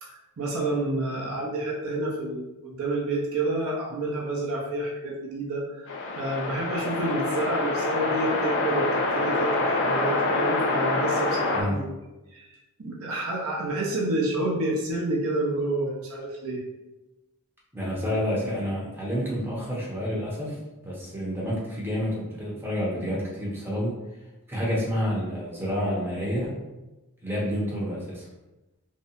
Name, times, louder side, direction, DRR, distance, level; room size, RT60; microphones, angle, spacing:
voice 1, 0.0-8.9 9.1-11.9 12.3-12.5 12.8-16.6, right 2 dB, 65° right, -2 dB, 0.6 m, -29 dB
sound 1, 5.9-11.6, left 2 dB, 55° left, 0.4 m, -26 dB
voice 2, 17.7-20.6 20.8-23.9 24.5-26.5 27.2-28.3, equal, 10° right, -5 dB, 0.6 m, -29 dB
2.6 x 2.1 x 2.7 m, 1.0 s
head